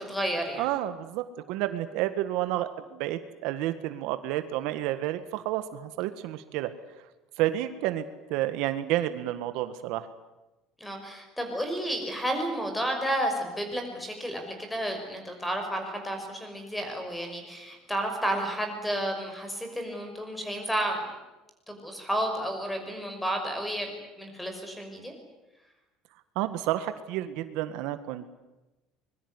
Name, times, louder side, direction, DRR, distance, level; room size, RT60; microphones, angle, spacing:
voice 1, 0.0-0.7 10.8-21.1 21.7-23.9 24.2-25.1, right 1 dB, 5° left, 5 dB, 5.9 m, -31 dB
voice 2, 0.5-6.7 7.4-10.1 26.4-28.3, right 14 dB, 70° right, 11 dB, 1.7 m, -30 dB
24.5 x 22.5 x 9.8 m, 1.0 s
cardioid pair, 155°, 0 cm